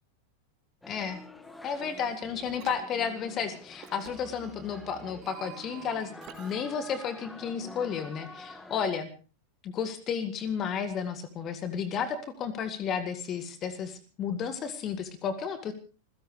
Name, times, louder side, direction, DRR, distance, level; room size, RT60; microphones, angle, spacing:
sound 1, 0.8-8.9, left 2 dB, 5° left, 1.7 m, -48 dB
voice 1, 0.9-1.2 1.6-6.1 6.4-9.1 9.6-15.7, left 7 dB, 30° left, 11 dB, 1.8 m, -32 dB
sound 2, 1.4-1.9 2.2-2.8 3.8-6.5, right 12 dB, 40° right, 2.6 m, -50 dB
26.5 x 16.5 x 3.3 m, 0.36 s
figure-of-eight pair, 90°, 0 cm